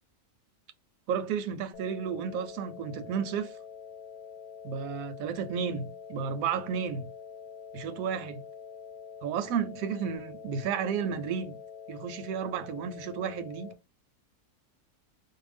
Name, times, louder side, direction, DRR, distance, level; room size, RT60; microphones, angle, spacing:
voice 1, 1.1-3.5 4.6-7.1 7.7-8.4 9.2-11.6 11.9-13.7, right 7 dB, 75° right, 0.9 m, -32 dB
sound 1, 1.7-13.7, left 7 dB, 70° left, 0.5 m, -46 dB
2.6 x 2.2 x 3.2 m
omnidirectional pair, 1.6 m